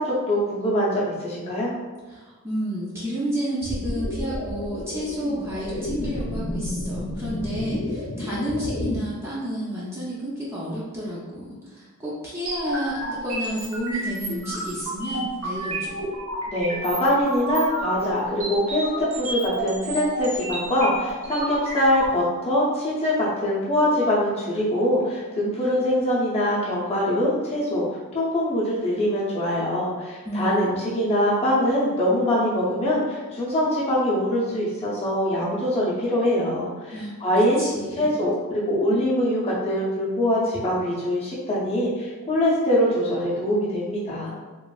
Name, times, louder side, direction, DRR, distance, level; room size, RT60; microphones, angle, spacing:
voice 1, 0.0-1.7 16.5-27.8 28.1-37.6 37.9-44.3, equal, 25° left, -7 dB, 0.7 m, -23 dB
voice 2, 2.1-15.9 30.3-30.8 36.9-37.1 37.6-38.2, equal, 10° right, -8 dB, 0.4 m, -31 dB
sound 1, 3.6-9.0, left 1 dB, 65° left, 0.5 m, -31 dB
sound 2, 12.5-22.1, right 1 dB, 70° right, 0.7 m, -31 dB
3.1 x 2.5 x 2.3 m, 1.3 s
head